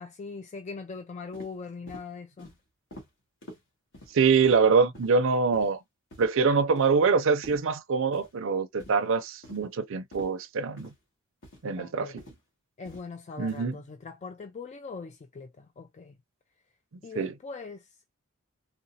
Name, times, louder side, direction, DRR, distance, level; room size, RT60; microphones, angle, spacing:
voice 1, 0.0-2.5 11.8-12.2 12.8-16.2 17.0-18.1, left 4 dB, 35° left, 0.3 m, -41 dB
sound 1, 1.3-1.5 1.9-2.1 2.4-2.6 2.9-3.1 3.4-3.6 3.9-4.1 4.4-4.6 4.9-5.1 5.5-5.7 6.1-6.3 6.8-7.0 7.4-7.6 8.1-8.3 8.8-9.0 9.4-9.6 10.1-10.3 10.8-10.9 11.4-11.6 12.2-12.4 12.9-13.0 13.5-13.6, equal, 60° left, 1.8 m, -47 dB
voice 2, 4.1-5.8 6.2-10.9 11.6-12.1 13.4-13.8 17.2-17.3, right 5 dB, 65° right, 0.5 m, -24 dB
4.0 x 2.1 x 2.7 m
head